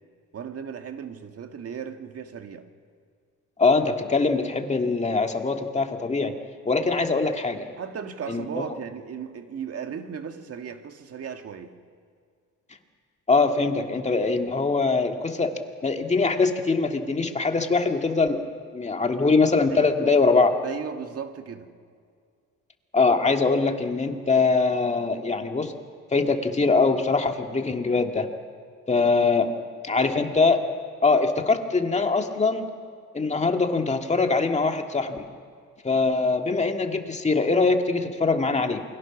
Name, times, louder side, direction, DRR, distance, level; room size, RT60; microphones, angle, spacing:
voice 1, 0.3-2.7 6.9-7.1 7.8-11.7 19.7-20.2 20.6-21.7 31.8-31.9 36.5-36.6, right 7 dB, 50° right, 6 dB, 1.9 m, -36 dB
voice 2, 3.6-6.3 6.7-7.7 8.3-8.6 13.3-15.5 15.8-18.4 18.7-20.5 22.9-25.7 26.1-28.3 28.9-29.5 29.8-30.6 31.0-32.7 33.1-35.3 35.8-38.8, left 4 dB, 20° left, 4 dB, 2.0 m, -22 dB
28.0 x 22.5 x 6.1 m, 2.1 s
cardioid pair, 105°, 31 cm